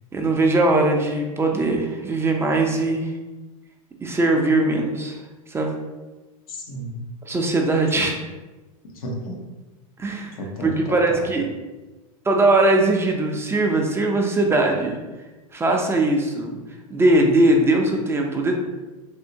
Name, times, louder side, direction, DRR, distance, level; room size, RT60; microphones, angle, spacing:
voice 1, 0.1-3.1 4.0-5.2 5.5-5.7 7.3-8.1 10.0-11.5 12.2-15.0 15.5-16.6 16.9-18.5, right 2 dB, 15° right, 2 dB, 0.4 m, -20 dB
voice 2, 6.5-7.1 8.0-8.1 8.8-9.4 10.4-11.3, equal, 80° left, 0 dB, 0.8 m, -33 dB
3.4 x 2.7 x 2.7 m, 1.2 s
hypercardioid pair, 105°, 18 cm